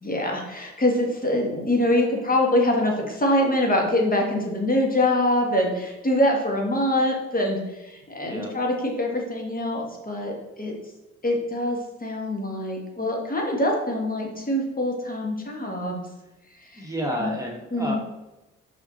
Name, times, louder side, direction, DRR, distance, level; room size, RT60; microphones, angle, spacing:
voice 1, 0.0-10.7 11.2-16.0 16.6-16.9 17.2-17.3 17.7-17.9, left 1 dB, 25° left, 0 dB, 2.0 m, -24 dB
voice 2, 16.7-17.9, equal, 10° right, -1 dB, 1.8 m, -30 dB
5.7 x 4.5 x 4.3 m, 0.99 s
hypercardioid pair, 45°, 34 cm